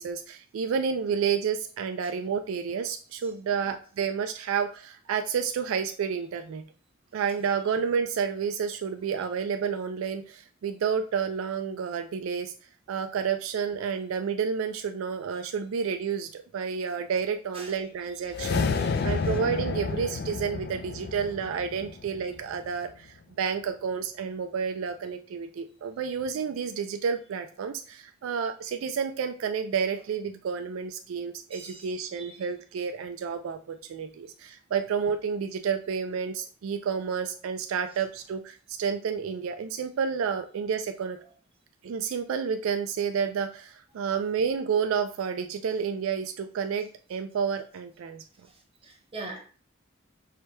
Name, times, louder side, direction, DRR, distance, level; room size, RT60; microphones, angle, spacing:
voice 1, 0.0-6.6 7.1-12.5 12.9-41.2 41.8-48.2, right 6 dB, 75° right, 7 dB, 0.3 m, -30 dB
sound 1, 18.3-22.7, left 4 dB, 50° left, 0.3 m, -30 dB
voice 2, 31.5-31.9 32.2-32.3 48.8-49.4, right 3 dB, 25° right, -1 dB, 1.2 m, -41 dB
4.9 x 2.2 x 4.3 m, 0.41 s
head